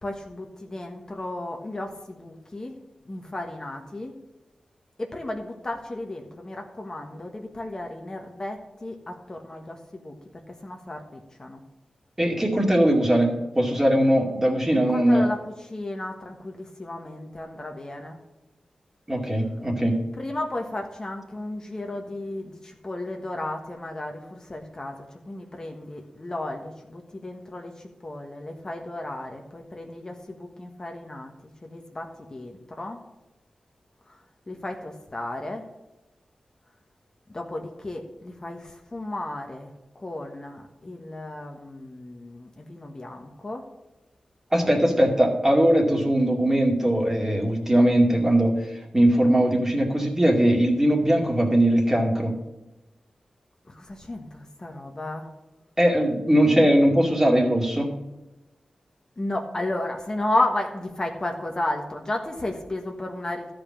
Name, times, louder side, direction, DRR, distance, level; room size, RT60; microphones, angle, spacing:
voice 1, 0.0-2.7 3.1-4.1 5.0-10.1 10.5-11.6 14.7-18.2 20.2-25.0 25.3-27.7 28.0-31.3 31.6-33.0 34.5-35.6 37.3-39.7 40.0-43.6 53.7-55.3 59.2-63.5, left 1 dB, 30° left, 2 dB, 1.4 m, -33 dB
voice 2, 12.2-15.3 19.1-20.0 44.5-52.3 55.8-57.9, right 1 dB, 20° right, 0 dB, 2.4 m, -20 dB
13.0 x 5.2 x 7.4 m, 1.0 s
wide cardioid pair, 85°, 2 cm